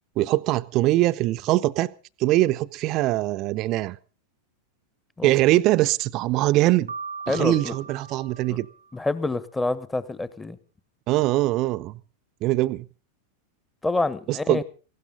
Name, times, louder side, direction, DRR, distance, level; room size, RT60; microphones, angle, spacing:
voice 1, 0.2-1.9 2.2-4.0 5.2-6.9 7.3-8.7 11.1-12.0 12.4-12.8 14.3-14.6, right 17 dB, 40° right, 0.7 m, -22 dB
Piano, 6.9-9.0, right 5 dB, 80° right, 0.9 m, -39 dB
voice 2, 7.3-7.7 8.5-8.6 8.9-10.6 13.8-14.6, left 2 dB, 10° left, 1.2 m, -27 dB
19.0 x 16.5 x 3.9 m
figure-of-eight pair, 90°, 0 cm